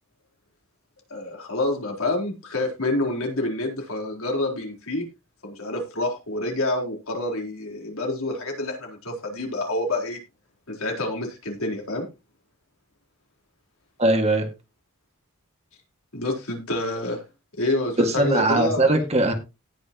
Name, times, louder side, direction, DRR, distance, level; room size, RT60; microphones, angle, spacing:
voice 1, 1.1-5.0 5.4-10.2 10.7-12.1 16.1-17.2 17.6-18.9, left 2 dB, 75° left, 1 dB, 4.1 m, -27 dB
voice 2, 14.0-14.5 18.0-19.3, right 2 dB, 30° right, 5 dB, 2.1 m, -20 dB
18.5 x 6.5 x 3.0 m, 0.27 s
head